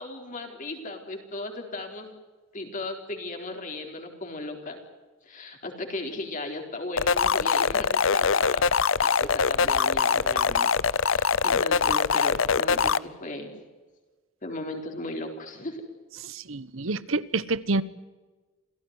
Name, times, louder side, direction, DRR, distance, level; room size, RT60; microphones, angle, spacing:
voice 1, 0.0-2.1 2.5-4.8 5.2-13.6 14.4-15.8, left 2 dB, 40° left, 3 dB, 4.1 m, -36 dB
sound 1, 7.0-13.0, left 5 dB, 70° left, 0.7 m, -23 dB
voice 2, 16.2-17.8, right 3 dB, 75° right, 17 dB, 1.1 m, -28 dB
28.0 x 16.0 x 9.6 m, 1.3 s
head